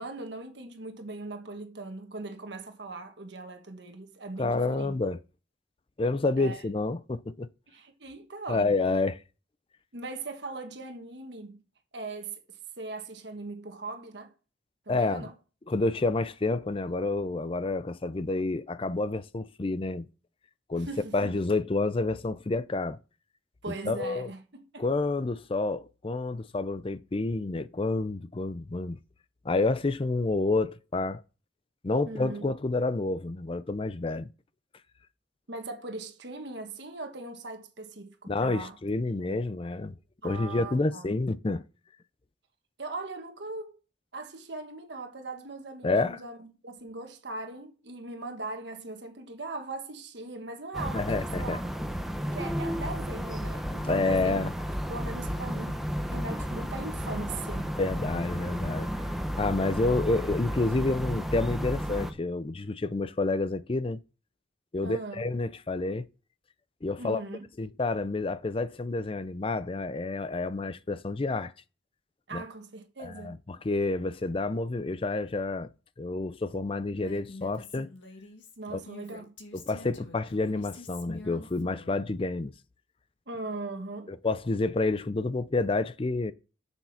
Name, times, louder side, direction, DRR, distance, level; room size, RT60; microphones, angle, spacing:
voice 1, 0.0-4.9 6.4-6.6 7.7-8.7 9.9-11.6 11.9-12.4 12.8-14.3 14.9-15.3 20.8-21.4 23.6-24.8 32.1-32.4 35.5-38.8 39.2-39.4 40.2-41.1 42.8-43.7 44.1-51.6 52.2-54.5 54.9-57.8 64.8-65.3 67.0-67.4 72.3-73.4 78.6-79.3 83.3-84.1, right 2 dB, 60° right, 1.4 m, -40 dB
voice 2, 4.4-5.2 6.0-7.5 8.5-9.2 14.9-15.3 15.7-20.1 20.7-20.9 21.1-23.0 23.7-24.3 24.8-29.0 29.4-31.2 31.8-34.3 38.3-40.0 40.2-41.6 45.8-46.2 50.9-51.6 53.8-54.5 57.8-58.9 59.4-64.0 64.7-66.1 66.8-67.2 67.6-71.5 72.3-72.4 73.0-75.7 76.0-77.9 78.7-78.8 79.5-82.5 84.1-86.3, left 3 dB, 30° left, 0.5 m, -29 dB
sound 1, 50.7-62.1, equal, ahead, 0.8 m, -33 dB
Female speech woman speaking, 76.9-82.0, left 2 dB, 70° left, 1.9 m, -47 dB
7.5 x 7.1 x 5.8 m
head